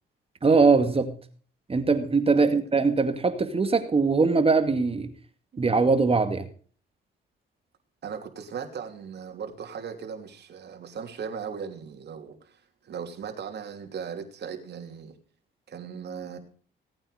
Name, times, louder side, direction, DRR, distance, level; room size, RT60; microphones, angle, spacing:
voice 1, 0.4-1.2 1.7-5.1 5.6-6.5, right 4 dB, 30° right, 9 dB, 2.1 m, -21 dB
voice 2, 8.0-15.2 15.7-16.4, right 7 dB, 55° right, 5 dB, 3.0 m, -38 dB
18.0 x 8.9 x 5.0 m, 0.44 s
cardioid pair, 90°, 20 cm